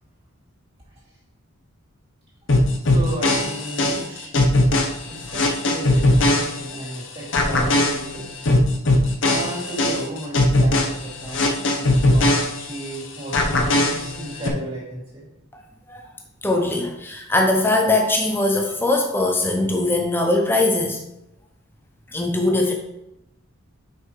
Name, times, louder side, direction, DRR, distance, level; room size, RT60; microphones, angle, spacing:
sound 1, 2.5-7.0 7.3-13.0 13.3-14.5, left 2 dB, 55° left, 1.0 m, -20 dB
voice 1, 2.8-4.3 5.1-8.3 9.2-15.3, right 1 dB, 25° right, -8 dB, 3.0 m, -34 dB
voice 2, 16.4-21.0 22.1-22.7, left 2 dB, 10° left, 2 dB, 0.7 m, -21 dB
6.0 x 5.9 x 4.7 m, 0.87 s
head